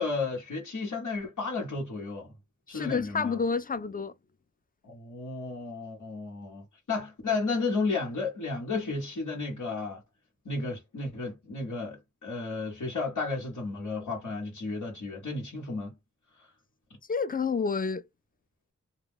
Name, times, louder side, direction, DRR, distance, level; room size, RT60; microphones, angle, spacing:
voice 1, 0.0-2.3 2.7-3.4 4.8-10.0 10.4-16.0 16.4-16.5, left 3 dB, 85° left, 1.2 m, -33 dB
voice 2, 2.7-4.1 17.1-18.0, left 5 dB, 30° left, 0.4 m, -29 dB
2.3 x 2.2 x 3.4 m
cardioid pair, 50°, 30 cm